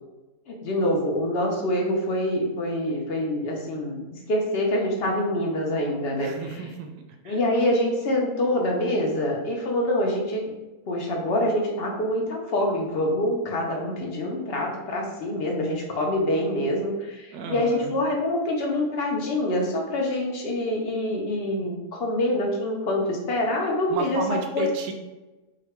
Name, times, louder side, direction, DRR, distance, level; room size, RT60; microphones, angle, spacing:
voice 1, 0.5-4.0 4.3-6.6 7.2-10.4 10.9-24.2 24.5-24.6, left 1 dB, 55° left, 0 dB, 0.7 m, -25 dB
voice 2, 6.1-6.9 7.2-7.4 17.3-17.9 23.9-24.9, right 4 dB, 75° right, 3 dB, 1.1 m, -32 dB
3.8 x 2.2 x 4.2 m, 1.1 s
omnidirectional pair, 1.7 m